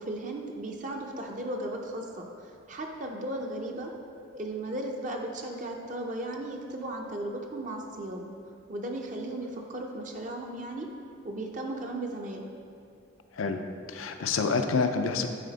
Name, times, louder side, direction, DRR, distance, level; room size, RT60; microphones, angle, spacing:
voice 1, 0.0-3.9 4.3-8.3 8.7-10.9 11.2-12.4, right 1 dB, 40° right, 1 dB, 0.5 m, -36 dB
voice 2, 13.4-15.3, left 4 dB, 85° left, 6 dB, 0.5 m, -28 dB
9.9 x 4.2 x 4.0 m, 2.6 s
head